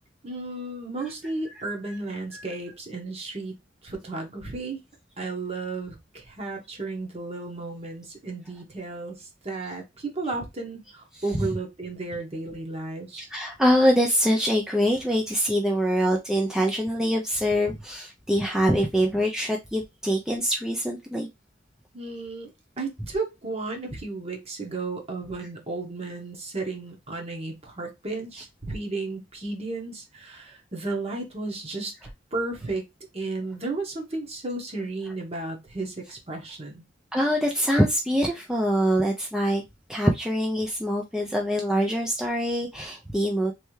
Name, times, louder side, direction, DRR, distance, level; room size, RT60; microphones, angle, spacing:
voice 1, 0.2-3.5 3.8-4.8 5.2-13.2 21.9-22.5 22.8-32.8 33.1-36.8, right 3 dB, 35° right, 2 dB, 1.2 m, -33 dB
voice 2, 13.2-21.3 37.1-39.6 39.9-43.5, equal, 5° right, 0 dB, 0.4 m, -24 dB
3.3 x 3.2 x 3.1 m, 0.21 s
head